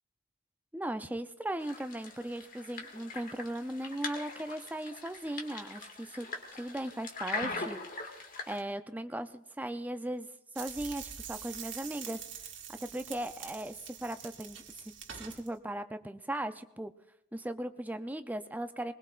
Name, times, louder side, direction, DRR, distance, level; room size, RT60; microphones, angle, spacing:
voice 1, 0.7-6.3 6.5-7.8 8.1-10.3 10.5-12.2 12.7-14.6 15.2-16.9 17.3-18.9, right 1 dB, 10° right, 9 dB, 0.5 m, -38 dB
sound 1, 1.6-8.6, left 3 dB, 50° left, 2.0 m, -41 dB
sound 2, 10.5-15.5, right 8 dB, 90° right, 1.8 m, -45 dB
21.0 x 20.5 x 2.5 m, 0.81 s
head